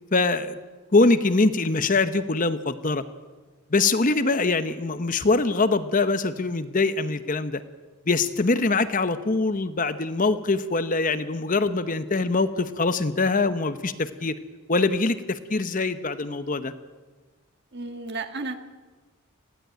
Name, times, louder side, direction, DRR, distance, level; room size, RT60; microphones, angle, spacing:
voice 1, 0.1-0.6 0.9-3.0 3.7-7.6 8.1-14.4 14.7-16.7, left 3 dB, 35° left, 11 dB, 0.9 m, -23 dB
voice 2, 17.7-18.5, right 3 dB, 50° right, 7 dB, 1.6 m, -32 dB
19.5 x 15.5 x 9.2 m, 1.3 s
head